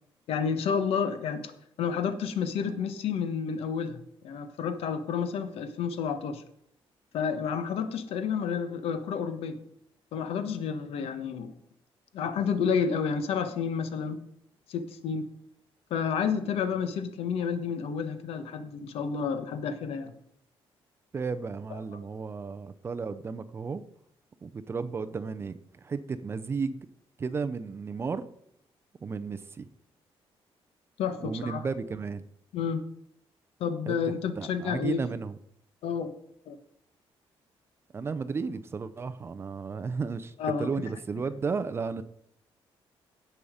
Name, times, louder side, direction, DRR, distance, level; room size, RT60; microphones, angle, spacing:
voice 1, 0.3-1.5 1.8-6.4 7.1-9.6 10.1-11.5 12.1-14.2 14.7-15.3 15.9-20.1 21.7-22.0 31.0-31.7 32.5-32.8 33.6-35.0 35.8-36.1 36.5-36.6 40.4-40.7, left 6 dB, 85° left, 10 dB, 1.2 m, -30 dB
voice 2, 21.1-23.8 24.4-25.6 25.8-26.8 27.2-28.3 29.0-29.7 31.2-32.2 33.9-34.0 34.4-35.4 37.9-40.3 40.6-42.0, right 5 dB, 25° right, 12 dB, 0.5 m, -33 dB
16.5 x 5.6 x 5.0 m, 0.71 s
cardioid pair, 175°, 10 cm